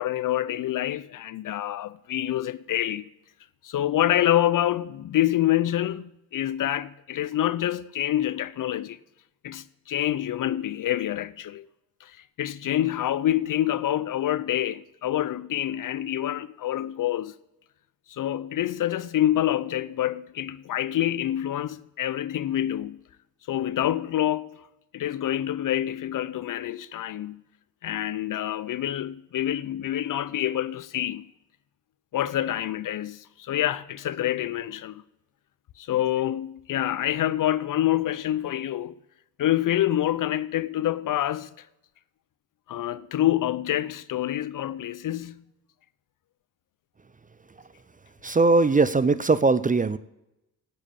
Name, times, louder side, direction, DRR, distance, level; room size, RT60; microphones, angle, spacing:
voice 1, 0.0-3.1 3.6-9.0 9.4-11.7 12.0-17.3 18.1-23.0 23.5-24.7 24.9-27.4 27.8-31.3 32.1-35.0 35.8-39.0 39.4-41.7 42.7-45.4, left 12 dB, 45° left, 0.6 m, -27 dB
voice 2, 48.2-50.0, right 3 dB, 15° right, 0.5 m, -20 dB
9.5 x 8.8 x 6.9 m
hypercardioid pair, 55°, 48 cm